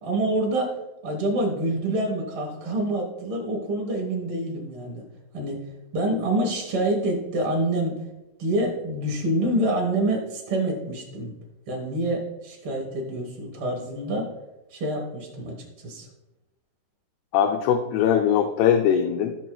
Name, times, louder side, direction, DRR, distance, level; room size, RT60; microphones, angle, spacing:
voice 1, 0.0-0.7 1.0-5.0 5.3-5.6 5.9-8.0 8.4-11.3 11.7-14.3 14.7-16.1, right 1 dB, 90° right, -1 dB, 1.1 m, -26 dB
voice 2, 17.3-19.4, left 8 dB, 85° left, 4 dB, 2.6 m, -21 dB
15.5 x 6.0 x 2.3 m, 1.0 s
omnidirectional pair, 4.6 m